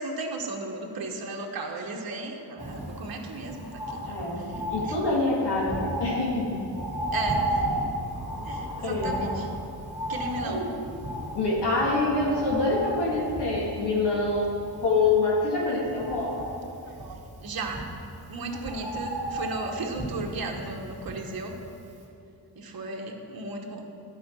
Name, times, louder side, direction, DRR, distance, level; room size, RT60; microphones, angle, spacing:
voice 1, 0.0-5.0 7.1-7.7 8.4-9.5 10.1-10.6 16.9-17.9 18.3-21.5 22.5-23.9, right 2 dB, 55° right, 1 dB, 1.1 m, -35 dB
Bird, 2.6-21.7 22.0-22.1, right 1 dB, 15° right, 2.4 m, -34 dB
voice 2, 4.1-6.6 8.8-9.3 10.4-10.7 11.3-14.5 14.8-16.4, left 3 dB, 65° left, -4 dB, 2.0 m, -26 dB
12.0 x 4.8 x 6.1 m, 2.8 s
wide cardioid pair, 140°, 43 cm